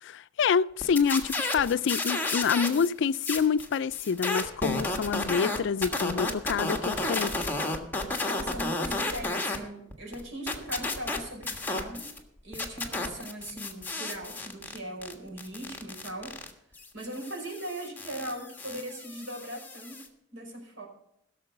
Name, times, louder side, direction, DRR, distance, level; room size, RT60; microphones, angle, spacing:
voice 1, 0.0-7.5, left 6 dB, 65° left, 0.4 m, -27 dB
sound 1, 0.8-2.9 3.1-9.6 9.9-12.2 12.5-20.1, left 2 dB, 10° left, 1.5 m, -32 dB
voice 2, 8.2-12.1 12.4-16.3 16.9-20.0 20.3-20.9, right 1 dB, 80° right, 5.1 m, -39 dB
16.5 x 6.8 x 6.6 m
head